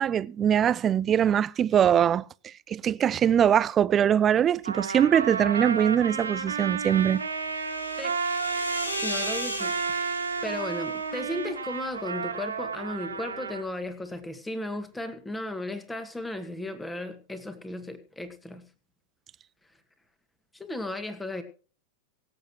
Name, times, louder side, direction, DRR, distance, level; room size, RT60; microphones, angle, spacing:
voice 1, 0.0-2.2 2.7-7.2, right 9 dB, 25° right, 0.5 m, -22 dB
Trumpet, 4.6-13.6, right 5 dB, 75° right, 2.0 m, -32 dB
sound 1, 6.3-11.9, left 1 dB, 80° left, 2.7 m, -37 dB
voice 2, 9.0-9.7 10.4-18.7 20.5-21.4, left 1 dB, 10° left, 2.1 m, -35 dB
24.0 x 8.1 x 3.1 m
figure-of-eight pair, 90°, 0 cm